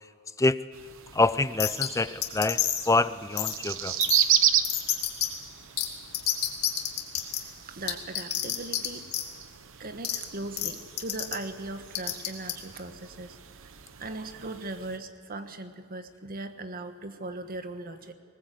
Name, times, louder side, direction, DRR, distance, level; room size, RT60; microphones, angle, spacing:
sound 1, 0.7-15.0, right 10 dB, 60° right, 0.9 m, -33 dB
voice 1, 1.1-4.0, left 2 dB, 15° left, 15 dB, 0.5 m, -26 dB
sound 2, 1.6-1.9 2.2-2.9 3.4-3.5 4.0-4.2 4.6-5.3 5.8-5.9 6.1-7.4 7.9-8.9 9.1-9.2 10.0-10.2 10.6-10.7 11.0-11.3 11.9-12.5, left 12 dB, 75° left, 2.1 m, -27 dB
voice 2, 7.2-9.3 9.8-13.4 14.0-18.1, right 2 dB, 40° right, 8 dB, 1.3 m, -39 dB
20.5 x 19.5 x 7.9 m, 2.4 s
head